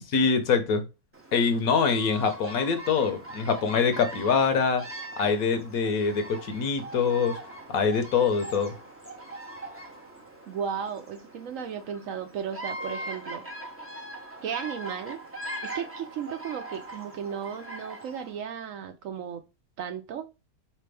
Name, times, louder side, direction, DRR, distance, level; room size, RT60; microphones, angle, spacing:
voice 1, 0.1-0.8 1.3-4.8 5.2-7.4 7.7-8.7, left 5 dB, 70° left, 1.2 m, -24 dB
Bird vocalization bird call bird song, 1.1-18.4, right 1 dB, 15° right, 0.5 m, -41 dB
voice 2, 10.4-13.4 14.4-15.2 15.4-19.4 19.8-20.3, right 7 dB, 65° right, 0.9 m, -35 dB
4.4 x 3.4 x 3.3 m
omnidirectional pair, 1.6 m